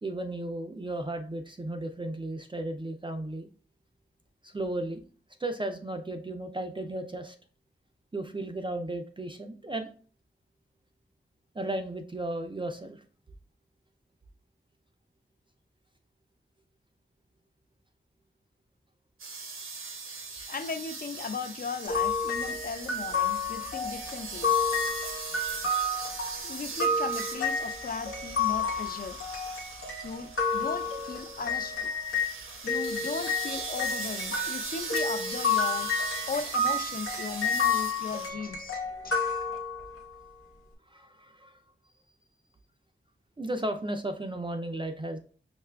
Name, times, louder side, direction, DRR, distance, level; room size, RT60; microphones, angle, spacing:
voice 1, 0.0-3.5 4.4-5.0 5.4-7.4 8.1-9.9 11.5-13.0 39.0-39.3 40.9-41.6 43.4-45.2, right 1 dB, 25° right, 0.4 m, -35 dB
sound 1, 19.2-38.3, right 4 dB, 75° right, 0.6 m, -40 dB
voice 2, 20.5-24.5 26.4-29.2 30.0-31.8 32.6-39.2, left 5 dB, 45° left, 0.4 m, -37 dB
sound 2, 21.9-32.3 32.7-40.0, left 4 dB, 80° left, 0.8 m, -30 dB
5.6 x 2.3 x 2.2 m
cardioid pair, 50°, 21 cm